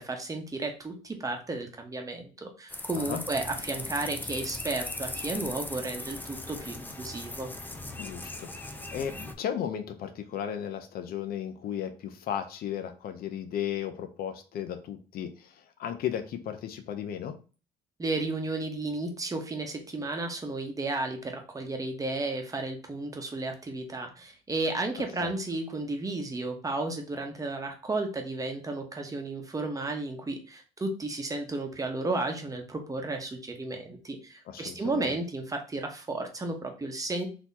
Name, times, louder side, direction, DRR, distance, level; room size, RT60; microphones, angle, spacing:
voice 1, 0.0-7.5 18.0-37.3, right 2 dB, 20° right, 3 dB, 1.0 m, -33 dB
sound 1, 2.7-9.3, left 2 dB, 10° left, 0.6 m, -38 dB
voice 2, 8.0-17.4 25.2-25.3 34.5-35.1, left 9 dB, 60° left, 9 dB, 0.6 m, -35 dB
4.1 x 2.9 x 4.1 m, 0.36 s
cardioid pair, 110°, 17 cm